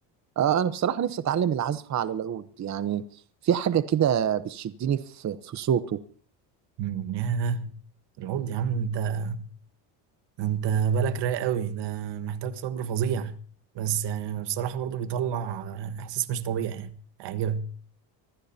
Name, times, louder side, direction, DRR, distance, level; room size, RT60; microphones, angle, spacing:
voice 1, 0.4-3.0 3.4-6.0, right 9 dB, 40° right, 0.9 m, -26 dB
voice 2, 6.8-7.7 8.2-9.5 10.4-13.4 13.7-17.7, right 7 dB, 65° right, 1.4 m, -29 dB
24.5 x 15.5 x 2.8 m
cardioid pair, 105°, 45 cm